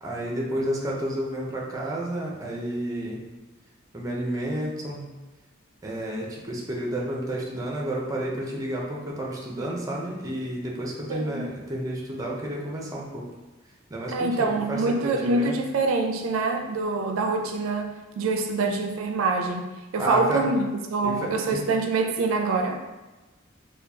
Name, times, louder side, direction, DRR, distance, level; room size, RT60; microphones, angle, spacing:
voice 1, 0.0-3.2 3.9-5.1 5.8-13.2 13.9-15.6 20.0-20.4 21.0-21.6, right 1 dB, 15° right, -3 dB, 0.6 m, -31 dB
voice 2, 11.1-11.5 14.1-22.8, right 3 dB, 85° right, 4 dB, 0.4 m, -25 dB
4.4 x 2.3 x 2.7 m, 1.2 s
head